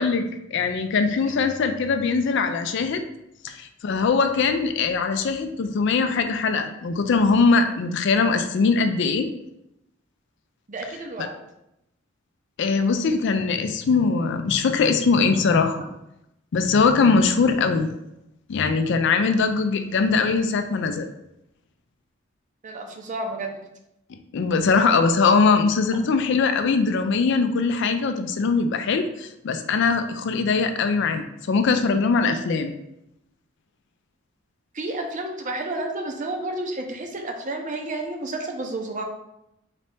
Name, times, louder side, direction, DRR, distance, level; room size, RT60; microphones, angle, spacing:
voice 1, 0.0-3.1 3.4-9.3 11.2-11.3 12.6-15.8 16.5-17.9 18.5-21.1 24.3-32.7, left 4 dB, 65° left, 8 dB, 0.4 m, -21 dB
voice 2, 10.7-11.4 22.6-23.6 34.7-39.0, right 2 dB, 40° right, 3 dB, 0.6 m, -31 dB
4.0 x 2.7 x 3.4 m, 0.84 s
head